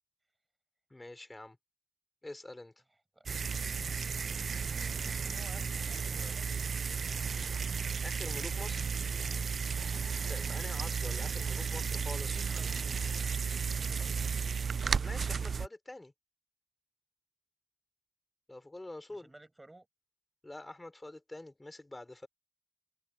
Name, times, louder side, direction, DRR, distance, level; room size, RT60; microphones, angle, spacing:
voice 1, 0.9-1.6 2.2-2.7 8.0-9.0 10.2-12.5 15.0-16.1 18.5-19.3 20.4-22.3, left 2 dB, 15° left, 4.3 m, -46 dB
sound 1, 3.3-15.7, right 6 dB, 60° right, 0.3 m, -34 dB
voice 2, 4.7-6.6 12.3-13.0 13.8-14.4 19.1-19.9, right 2 dB, 15° right, 6.4 m, -55 dB
wide cardioid pair, 120°, 0 cm